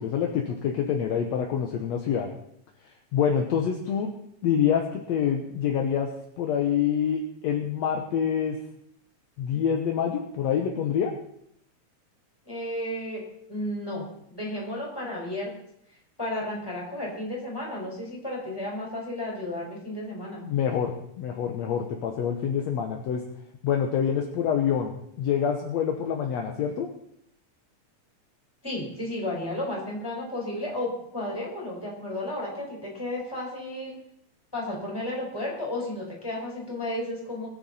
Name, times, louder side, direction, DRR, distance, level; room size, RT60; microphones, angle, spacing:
voice 1, 0.0-2.3 2.8-4.1 4.4-6.1 6.4-8.6 9.4-11.1 20.5-23.2 23.6-26.9, left 8 dB, 65° left, 3 dB, 2.1 m, -26 dB
voice 2, 12.4-13.2 13.5-15.5 16.2-20.4 28.6-34.0 34.5-37.5, left 1 dB, 5° left, -3 dB, 5.1 m, -33 dB
21.5 x 9.2 x 4.2 m, 0.73 s
omnidirectional pair, 3.5 m